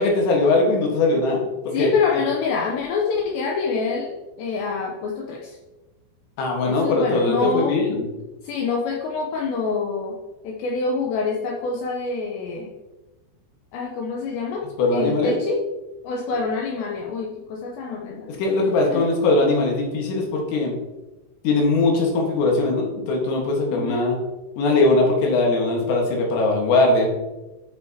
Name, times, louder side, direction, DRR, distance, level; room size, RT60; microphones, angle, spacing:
voice 1, 0.0-1.9 6.4-8.1 14.8-15.3 18.3-20.7 21.4-24.2 24.6-27.1, left 2 dB, 65° left, 0 dB, 3.4 m, -20 dB
voice 2, 1.7-5.6 6.6-7.7 8.4-10.2 10.4-12.7 13.7-14.7 14.9-15.6 16.0-18.3 18.9-19.1 23.7-24.1, left 4 dB, 85° left, 0 dB, 2.5 m, -26 dB
11.0 x 6.3 x 2.9 m, 1.1 s
omnidirectional pair, 5.9 m